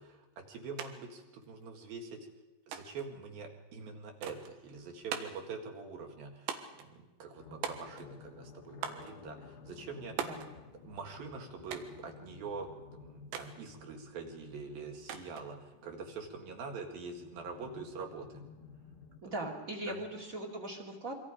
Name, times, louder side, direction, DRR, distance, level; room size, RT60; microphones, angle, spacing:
voice 1, 0.0-2.2 2.7-10.3 10.8-18.4 19.9-20.0, right 4 dB, 55° right, 2 dB, 3.7 m, -44 dB
sound 1, 0.8-0.9 1.2-1.9 2.7-3.1 4.2-4.5 5.1-5.5 6.5-6.9 7.6-8.2 8.8-9.1 10.2-10.5 11.7-12.0 13.3-13.5 15.1-15.5, right 8 dB, 75° right, 3.7 m, -40 dB
sound 2, 7.4-19.2, left 6 dB, 85° left, 3.9 m, -54 dB
voice 2, 19.2-21.1, right 1 dB, 25° right, 1 dB, 1.9 m, -40 dB
26.5 x 24.5 x 5.1 m, 1.1 s
omnidirectional pair, 5.3 m